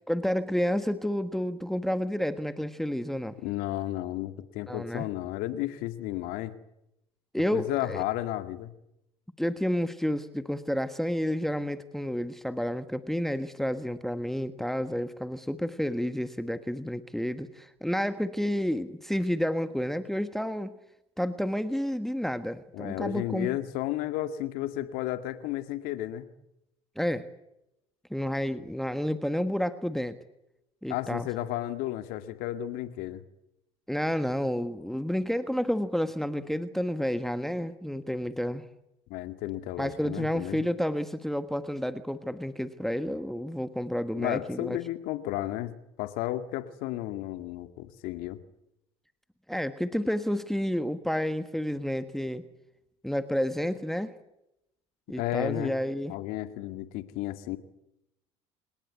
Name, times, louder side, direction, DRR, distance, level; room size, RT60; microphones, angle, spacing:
voice 1, 0.1-3.3 4.7-5.0 7.3-8.0 9.4-20.7 21.2-23.6 27.0-27.3 28.1-30.2 30.8-31.3 33.9-38.6 39.8-44.8 49.5-52.4 53.0-54.1 55.1-56.1, equal, ahead, 10 dB, 1.4 m, -30 dB
voice 2, 3.4-6.5 7.5-8.7 22.7-26.3 30.9-33.2 39.1-40.6 44.2-45.7 46.0-48.4 55.2-55.8 56.1-57.6, left 14 dB, 65° left, 9 dB, 2.1 m, -33 dB
28.0 x 19.5 x 8.3 m, 0.87 s
hypercardioid pair, 70°, 16 cm